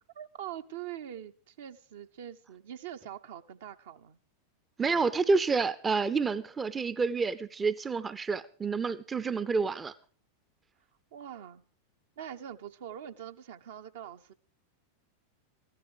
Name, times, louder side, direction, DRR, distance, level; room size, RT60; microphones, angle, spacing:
voice 1, 0.1-4.2 11.1-11.6 12.2-14.3, right 10 dB, 55° right, 0.8 m, -43 dB
voice 2, 4.8-9.9, right 4 dB, 15° right, 0.6 m, -29 dB
15.0 x 12.5 x 5.0 m
figure-of-eight pair, 90°, 0 cm